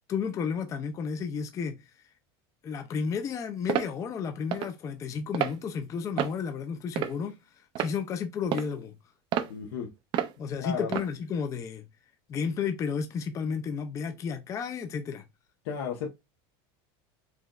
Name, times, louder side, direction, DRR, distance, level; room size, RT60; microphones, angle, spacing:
voice 1, 0.1-1.8 2.6-7.3 7.8-8.9 10.4-11.8 12.3-15.2, left 6 dB, 25° left, 0.5 m, -32 dB
sound 1, 3.7-3.9 4.5-4.7 5.3-5.6 6.2-6.4 7.0-7.3 7.8-7.9 8.5-8.7 9.3-9.5 10.1-10.3 10.9-11.1, right 10 dB, 35° right, 0.5 m, -29 dB
voice 2, 9.5-9.9 10.6-10.9 15.6-16.1, left 6 dB, 80° left, 0.9 m, -33 dB
4.8 x 3.0 x 2.3 m
supercardioid pair, 155°, 13 cm